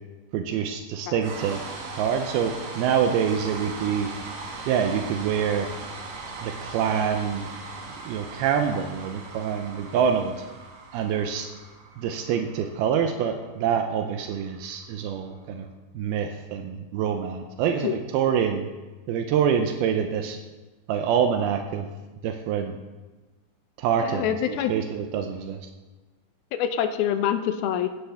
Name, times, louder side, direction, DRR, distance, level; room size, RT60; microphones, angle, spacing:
voice 1, 0.3-1.6 2.0-4.1 4.7-5.7 6.4-7.5 8.1-10.3 10.9-11.5 12.0-15.7 15.9-18.7 19.1-20.4 20.9-21.9 22.2-22.8 23.8-25.6, right 7 dB, 85° right, 5 dB, 2.7 m, -26 dB
sound 1, 1.2-15.3, right 3 dB, 65° right, 3.6 m, -39 dB
voice 2, 24.0-24.7 26.5-27.9, left 10 dB, 85° left, 8 dB, 2.6 m, -25 dB
16.5 x 13.5 x 3.5 m, 1.2 s
omnidirectional pair, 4.3 m